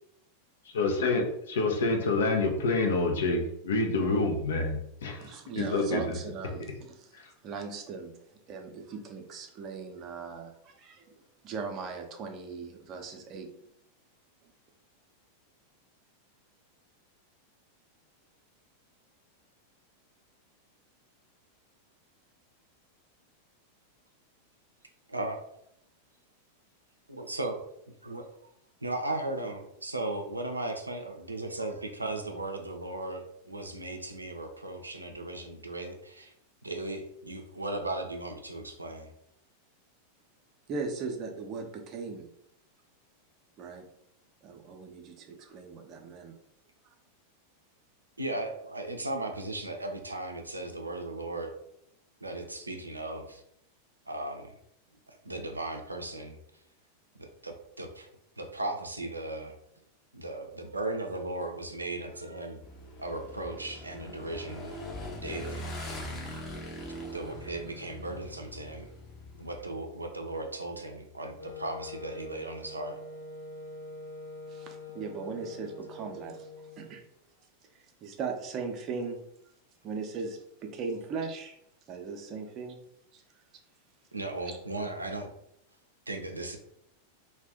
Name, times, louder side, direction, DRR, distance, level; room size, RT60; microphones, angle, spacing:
voice 1, 0.7-6.1 7.1-7.2, left 3 dB, 60° left, 3 dB, 0.5 m, -27 dB
voice 2, 5.0-7.1 7.4-8.1 8.5-11.1 11.4-13.5 40.7-42.3 43.6-43.8 44.4-46.4 74.5-76.5 76.8-77.0 78.0-79.2 79.8-81.6 81.9-82.8 83.1-83.2 84.5-84.6, right 4 dB, 35° right, 3 dB, 0.6 m, -38 dB
voice 3, 25.1-25.4 27.1-27.6 28.0-28.2 28.8-36.3 36.6-39.1 48.2-51.5 52.2-53.4 54.1-54.5 55.1-56.4 57.2-58.1 58.4-59.5 60.1-62.6 63.0-64.8 65.2-65.7 67.1-68.9 69.4-73.0 84.1-85.3 86.1-86.6, right 2 dB, 80° right, 3 dB, 0.4 m, -36 dB
Motorcycle / Engine, 62.6-69.7, equal, 25° left, 0.7 m, -41 dB
Wind instrument woodwind instrument, 71.4-77.1, left 2 dB, 80° left, 0.9 m, -44 dB
2.5 x 2.2 x 3.5 m, 0.75 s
figure-of-eight pair, 90°, 0 cm